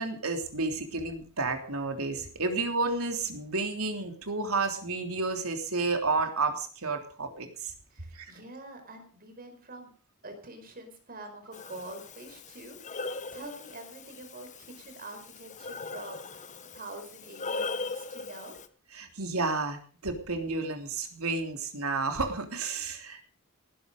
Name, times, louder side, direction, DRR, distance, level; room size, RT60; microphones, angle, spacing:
voice 1, 0.0-7.7 8.1-8.3 18.9-23.2, right 3 dB, 80° right, 5 dB, 3.3 m, -31 dB
voice 2, 7.9-9.9 10.2-18.6 22.7-22.9, right 2 dB, 40° right, 6 dB, 4.8 m, -46 dB
Breathing, 11.5-18.7, left 3 dB, 35° left, 1.1 m, -40 dB
19.0 x 11.5 x 5.2 m, 0.40 s
head